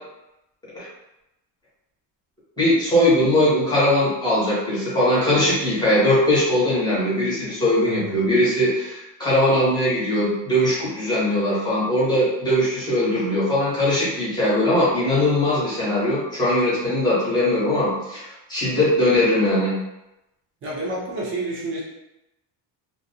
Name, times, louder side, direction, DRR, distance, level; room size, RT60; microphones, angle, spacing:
voice 1, 2.6-19.7, left 1 dB, 10° left, -9 dB, 0.7 m, -20 dB
voice 2, 7.8-8.3 20.6-21.8, right 2 dB, 30° right, -4 dB, 0.6 m, -30 dB
2.5 x 2.0 x 2.7 m, 0.92 s
cardioid pair, 175°, 43 cm